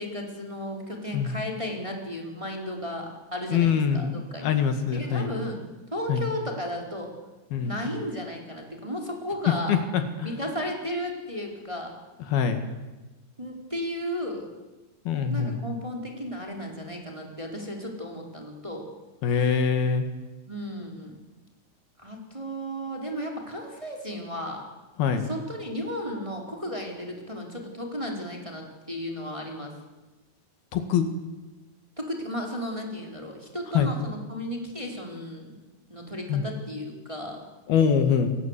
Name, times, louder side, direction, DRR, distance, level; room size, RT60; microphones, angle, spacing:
voice 1, 0.0-4.5 4.9-5.6 5.9-7.1 7.6-9.8 10.2-11.9 13.4-14.5 15.2-18.9 20.5-21.2 22.0-24.7 25.2-29.7 32.0-35.5 35.9-37.4, equal, 10° right, 1 dB, 4.0 m, -34 dB
voice 2, 3.5-5.3 6.1-6.3 7.5-7.8 9.7-10.3 12.3-12.6 15.1-15.6 19.2-20.1 25.0-25.2 30.7-31.1 33.7-33.9 36.3-36.4 37.7-38.4, left 7 dB, 75° left, 7 dB, 3.8 m, -24 dB
29.0 x 23.0 x 8.3 m, 1.2 s
omnidirectional pair, 4.5 m